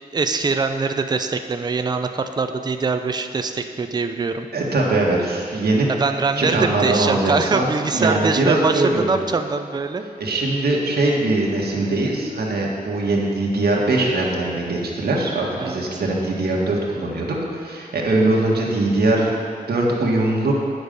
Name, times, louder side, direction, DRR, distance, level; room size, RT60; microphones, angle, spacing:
voice 1, 0.1-4.5 5.9-10.0 15.6-16.0, right 4 dB, 25° right, 7 dB, 0.4 m, -23 dB
voice 2, 4.5-5.9 6.4-9.2 10.2-19.3 19.7-20.5, right 2 dB, 80° right, -3 dB, 1.6 m, -21 dB
9.4 x 6.4 x 5.2 m, 2.3 s
wide cardioid pair, 150°, 16 cm